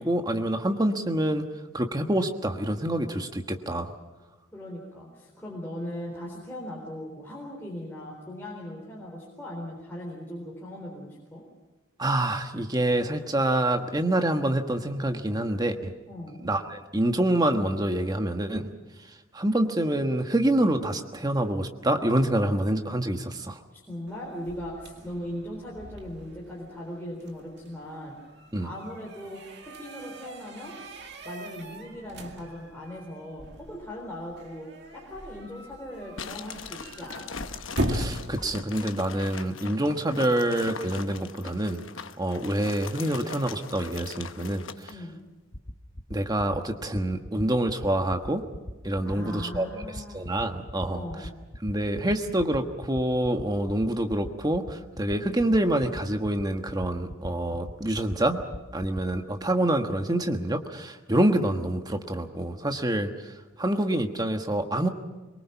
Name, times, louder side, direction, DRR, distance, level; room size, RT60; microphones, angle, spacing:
voice 1, 0.0-1.5 1.7-3.9 12.0-15.9 16.4-18.7 19.3-23.6 28.5-28.7 37.9-41.8 42.2-44.9 46.1-48.4 48.8-51.0 51.6-58.4 58.7-64.9, right 1 dB, 20° right, 5 dB, 1.4 m, -26 dB
voice 2, 4.5-11.4 16.1-16.4 23.7-28.2 28.6-30.8 31.2-37.3 44.9-45.2 49.1-50.2 50.8-51.3, left 1 dB, 10° left, -4 dB, 4.0 m, -39 dB
sound 1, 24.1-39.1, equal, 55° right, 2.3 m, -39 dB
sound 2, 36.2-45.0, left 5 dB, 70° left, 1.0 m, -41 dB
sound 3, 45.3-59.0, left 1 dB, 35° left, 1.2 m, -38 dB
24.0 x 22.5 x 5.9 m, 1.2 s
head